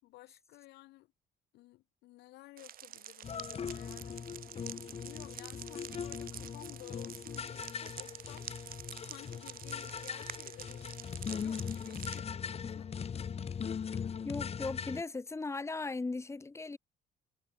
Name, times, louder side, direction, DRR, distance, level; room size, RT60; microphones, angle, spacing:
voice 1, 0.0-1.1 1.5-4.2 4.8-11.0 11.4-13.2, left 18 dB, 85° left, 7.9 m, -54 dB
sound 1, 2.6-12.2, right 11 dB, 60° right, 4.4 m, -48 dB
sound 2, 3.2-15.0, left 7 dB, 35° left, 2.1 m, -40 dB
voice 2, 14.2-16.8, left 3 dB, 15° left, 2.0 m, -37 dB
cardioid pair, 110°, 17 cm